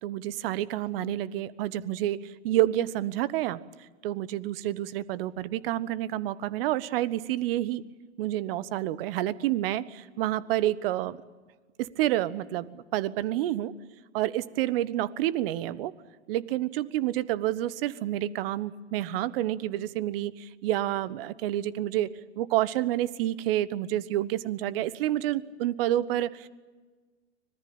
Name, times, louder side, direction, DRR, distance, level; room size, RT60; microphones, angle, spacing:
voice 1, 0.0-7.8 8.2-11.2 11.8-13.7 14.1-15.9 16.3-22.1 22.4-26.5, right 13 dB, 50° right, 17 dB, 1.2 m, -29 dB
25.5 x 19.5 x 8.8 m, 1.3 s
hypercardioid pair, 110°, 35 cm